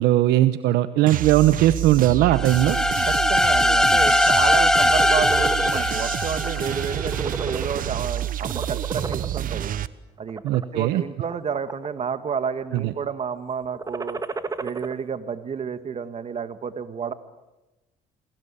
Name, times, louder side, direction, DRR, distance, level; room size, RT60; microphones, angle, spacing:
voice 1, 0.0-2.8 10.4-11.0 12.7-12.9, right 14 dB, 85° right, 12 dB, 1.0 m, -19 dB
sound 1, 1.1-9.9, right 11 dB, 55° right, 1.1 m, -29 dB
sound 2, 2.3-7.2, left 1 dB, 5° left, 0.9 m, -20 dB
voice 2, 3.1-9.7 10.2-14.2 14.6-17.1, right 6 dB, 40° right, 11 dB, 2.0 m, -30 dB
sound 3, 4.8-5.8 6.3-6.5 6.8-8.1 8.4-9.5 10.2-10.6 11.2-12.0 12.3-12.8 13.7-14.9, right 3 dB, 20° right, 1.9 m, -33 dB
29.0 x 22.0 x 8.5 m, 1.0 s
cardioid pair, 110°, 17 cm